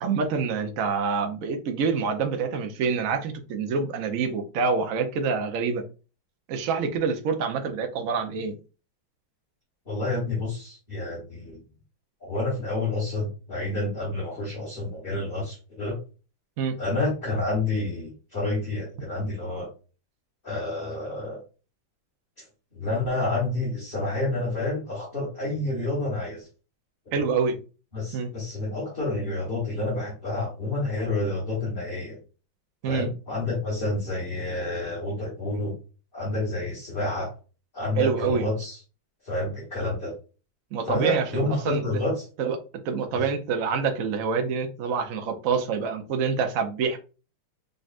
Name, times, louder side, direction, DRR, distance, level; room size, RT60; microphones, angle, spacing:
voice 1, 0.0-5.8 6.5-8.6 16.6-16.8 27.1-27.6 28.1-28.3 32.8-33.1 38.0-38.5 40.7-41.8 42.4-42.6 42.8-47.0, right 5 dB, 70° right, 6 dB, 0.8 m, -26 dB
voice 2, 9.8-11.6 12.2-16.0 16.8-19.7 20.4-21.4 22.7-26.5 27.1-27.3 27.9-32.2 32.8-35.8 36.1-37.3 37.7-38.8 39.2-40.2 40.8-42.3, left 2 dB, 30° left, -5 dB, 1.4 m, -29 dB
3.9 x 3.4 x 2.4 m, 0.34 s
omnidirectional pair, 2.1 m